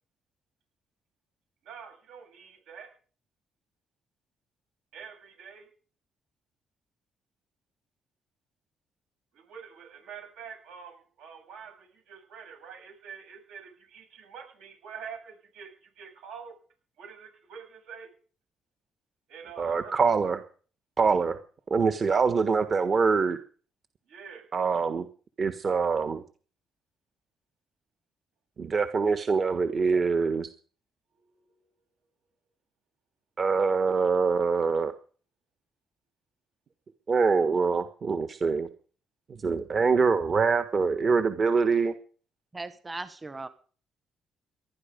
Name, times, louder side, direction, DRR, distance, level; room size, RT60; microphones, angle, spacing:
voice 1, 1.6-2.9 4.9-5.7 9.3-16.5 17.0-18.1 19.3-19.9 24.1-24.5 31.1-31.6, right 7 dB, 90° right, 4 dB, 7.8 m, -46 dB
voice 2, 19.6-20.4 21.0-21.4 21.7-23.4 24.5-25.0 25.4-26.2 28.6-30.5 33.4-34.9 37.1-38.7 39.3-41.9, right 5 dB, 45° right, 9 dB, 1.4 m, -24 dB
voice 3, 42.5-43.5, right 3 dB, 20° right, 11 dB, 1.4 m, -38 dB
19.5 x 12.0 x 5.3 m, 0.42 s
cardioid pair, 90°, 0 cm